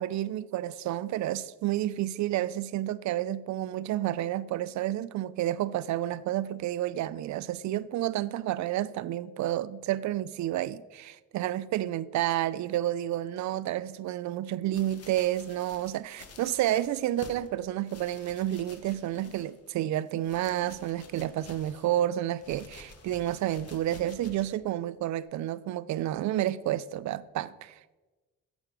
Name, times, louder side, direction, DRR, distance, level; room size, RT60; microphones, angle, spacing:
voice 1, 0.0-28.0, right 13 dB, 70° right, 0.5 m, -30 dB
sound 1, 14.7-17.5 17.8-19.7 20.0-22.0 22.4-24.6 25.2-25.3, left 4 dB, 55° left, 1.2 m, -51 dB
9.1 x 7.1 x 5.0 m
cardioid pair, 90°, 30 cm